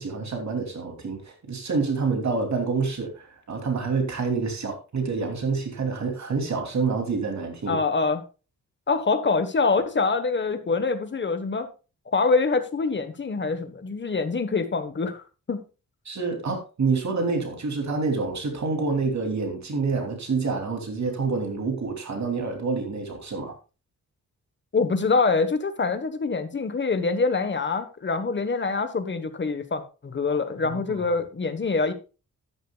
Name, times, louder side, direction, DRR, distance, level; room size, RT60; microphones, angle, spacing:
voice 1, 0.0-7.8 16.1-23.5 30.3-31.1, right 4 dB, 55° right, 2.9 m, -27 dB
voice 2, 7.7-8.2 8.9-11.7 12.1-15.6 24.7-31.9, left 4 dB, 35° left, 1.2 m, -25 dB
13.0 x 10.5 x 2.3 m
wide cardioid pair, 155°, 33 cm